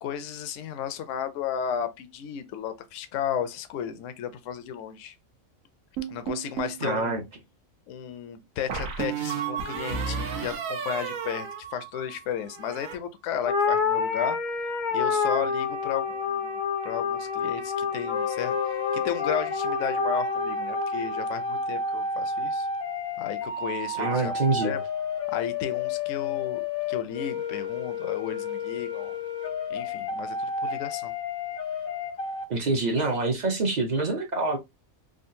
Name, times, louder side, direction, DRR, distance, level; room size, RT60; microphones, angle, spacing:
voice 1, 0.0-5.1 6.1-7.2 7.9-14.4 14.9-18.6 18.9-22.7 23.2-24.3 24.6-24.8 25.3-26.6 26.9-29.2 29.7-31.1, left 8 dB, 70° left, 0.9 m, -34 dB
sound 1, 6.0-6.8 8.7-12.2 12.5-13.0, right 7 dB, 80° right, 1.2 m, -32 dB
voice 2, 6.8-7.2 23.9-24.8 32.5-34.6, right 3 dB, 45° right, 0.6 m, -26 dB
sound 2, 13.4-22.0, left 5 dB, 55° left, 0.5 m, -29 dB
sound 3, 18.1-32.4, left 4 dB, 90° left, 1.3 m, -31 dB
3.7 x 2.3 x 2.6 m
omnidirectional pair, 1.4 m